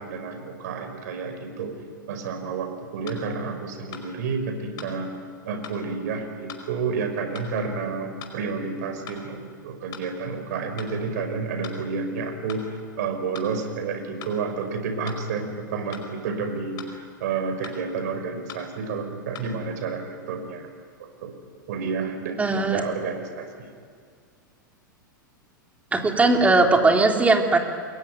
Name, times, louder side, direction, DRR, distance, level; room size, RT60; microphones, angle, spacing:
voice 1, 0.0-1.7 2.1-5.1 5.4-20.7 21.0-21.3 21.7-23.7, right 5 dB, 55° right, 6 dB, 5.5 m, -30 dB
sound 1, 3.1-3.2 3.9-4.1 4.8-4.9 5.6-5.8 6.5-6.7 7.3-7.5 8.2-8.4 9.1-9.2 9.9-10.1 10.8-10.9 11.6-11.8 12.5-12.7 13.3-13.5 14.2-14.4 15.1-15.2 15.9-16.1 16.8-16.9 17.6-17.8 18.5-18.7 19.3-19.4, left 8 dB, 40° left, 4.9 m, -40 dB
voice 2, 22.4-22.8 25.9-27.6, right 3 dB, 15° right, 3 dB, 3.6 m, -19 dB
28.5 x 22.5 x 9.4 m, 2.1 s
figure-of-eight pair, 95°, 11 cm